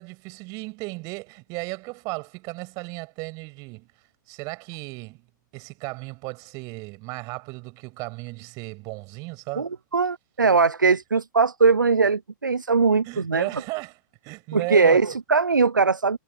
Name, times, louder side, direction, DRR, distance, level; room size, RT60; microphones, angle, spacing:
voice 1, 0.0-3.9 4.3-5.2 5.5-9.7 13.0-15.0, right 27 dB, 35° right, 7.8 m, -35 dB
voice 2, 9.6-13.5 14.5-16.2, right 4 dB, 75° right, 0.8 m, -20 dB
figure-of-eight pair, 105°, 10 cm